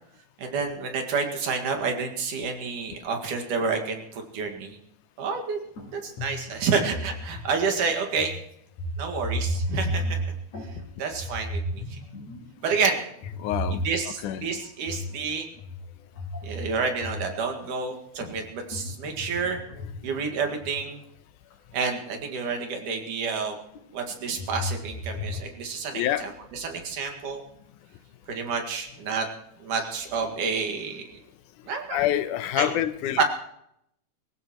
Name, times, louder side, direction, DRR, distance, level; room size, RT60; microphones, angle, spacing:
voice 1, 0.4-4.8 5.2-5.6 5.9-8.3 9.0-10.1 11.0-12.0 12.6-13.0 13.9-15.5 16.4-19.6 20.0-21.0 21.7-23.6 23.9-27.4 28.3-29.3 29.6-31.1 31.7-32.0 32.6-32.7 33.2-33.3, right 5 dB, 90° right, 3.5 m, -29 dB
sound 1, 5.8-5.9 6.2-7.7 8.2-8.4 8.7-10.8 11.1-12.6 13.2-14.4 14.8-15.2 15.5-17.6 18.2-20.8 21.7-21.8 22.3-22.4 23.8-25.4, equal, 65° left, 5.4 m, -33 dB
voice 2, 13.4-14.6 25.9-26.3 31.9-33.2, left 12 dB, 85° left, 2.3 m, -27 dB
24.0 x 15.5 x 3.1 m
omnidirectional pair, 3.5 m